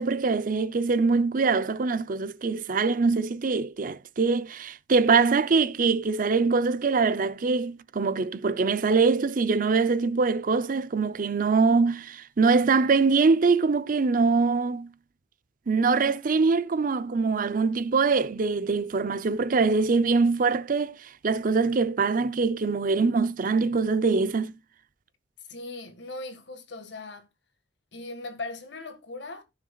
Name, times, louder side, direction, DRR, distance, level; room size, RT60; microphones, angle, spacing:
voice 1, 0.0-14.9 15.7-24.5, right 4 dB, 45° right, 0.5 m, -23 dB
voice 2, 25.5-27.3 27.9-29.4, left 2 dB, 70° left, 1.8 m, -39 dB
16.5 x 6.1 x 2.3 m
head